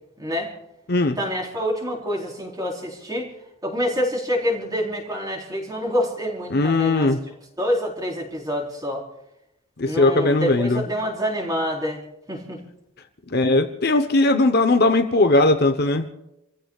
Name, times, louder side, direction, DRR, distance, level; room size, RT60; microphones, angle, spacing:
voice 1, 0.2-0.5 1.2-3.3 3.6-9.0 9.8-12.0 12.3-12.6, equal, 15° right, 4.1 m, -27 dB
voice 2, 6.5-7.2 9.8-10.8 13.3-16.0, left 2 dB, 45° left, 1.0 m, -19 dB
29.0 x 15.5 x 2.4 m
head